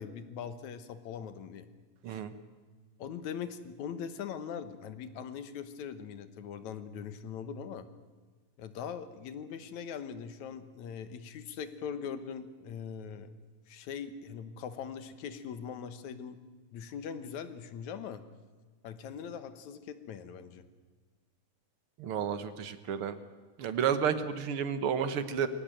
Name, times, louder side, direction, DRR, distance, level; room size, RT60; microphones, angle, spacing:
voice 1, 0.0-1.7 2.1-2.2 3.0-7.9 8.6-13.3 13.7-16.4 16.7-18.2 18.8-20.6, left 7 dB, 75° left, 11 dB, 2.6 m, -41 dB
voice 2, 22.0-23.2 23.6-25.5, right 7 dB, 55° right, 12 dB, 1.8 m, -31 dB
23.0 x 17.0 x 9.1 m, 1.4 s
omnidirectional pair, 3.4 m